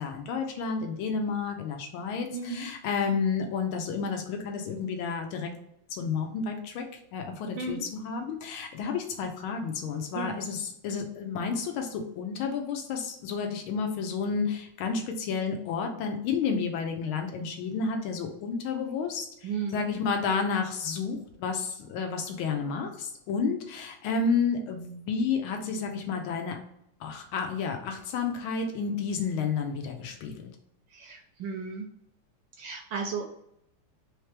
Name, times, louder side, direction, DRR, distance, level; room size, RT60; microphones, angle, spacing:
voice 1, 0.0-5.5 5.9-6.8 7.1-26.6 27.0-30.5, left 5 dB, 75° left, 3 dB, 1.5 m, -31 dB
voice 2, 2.3-2.7 7.5-7.8 10.1-10.4 19.4-19.9 30.9-31.9 32.6-33.3, right 5 dB, 75° right, 2 dB, 1.1 m, -34 dB
3.9 x 3.3 x 3.2 m, 0.75 s
omnidirectional pair, 2.4 m